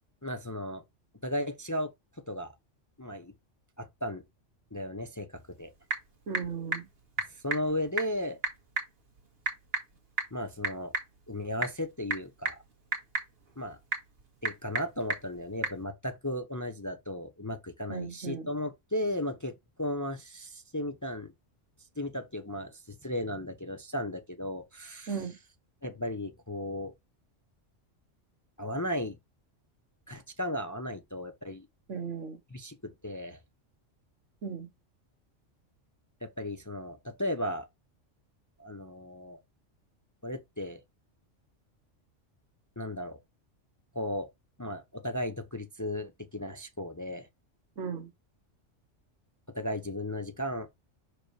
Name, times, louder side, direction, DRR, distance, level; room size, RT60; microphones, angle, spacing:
voice 1, 0.2-0.8 1.2-1.9 2.3-2.5 3.0-3.3 3.8-4.2 4.7-5.7 7.3-8.4 10.3-11.0 11.3-12.6 13.6-13.8 14.4-21.3 22.0-25.2 25.8-26.9 28.6-29.2 30.1-31.7 32.5-33.4 36.2-37.7 38.6-39.4 40.2-40.8 42.8-43.2 43.9-44.3 44.6-47.3 49.5-50.7, left 1 dB, 20° left, 0.6 m, -35 dB
Typing / Telephone, 5.3-15.8, right 3 dB, 55° right, 1.9 m, -37 dB
voice 2, 6.3-6.9 17.9-18.5 25.1-25.3 31.9-32.4 34.4-34.7 47.8-48.1, right 6 dB, 75° right, 1.4 m, -36 dB
6.2 x 4.8 x 3.2 m
omnidirectional pair, 1.3 m